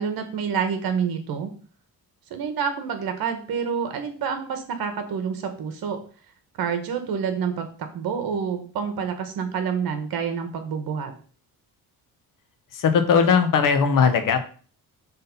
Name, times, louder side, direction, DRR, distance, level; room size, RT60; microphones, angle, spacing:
voice 1, 0.0-1.5 2.3-6.0 6.6-11.1, right 6 dB, 70° right, 7 dB, 1.4 m, -28 dB
voice 2, 12.7-14.4, left 6 dB, 60° left, 8 dB, 1.1 m, -19 dB
5.7 x 3.8 x 5.3 m, 0.41 s
cardioid pair, 145°, 37 cm